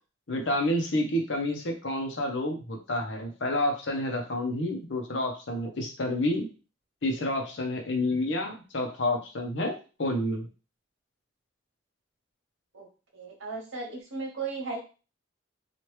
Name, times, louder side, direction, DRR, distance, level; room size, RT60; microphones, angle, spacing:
voice 1, 0.3-6.5 7.0-10.5, left 1 dB, 65° left, 3 dB, 0.7 m, -29 dB
voice 2, 13.1-14.8, right 4 dB, 80° right, -1 dB, 1.1 m, -36 dB
3.0 x 2.4 x 3.1 m, 0.34 s
head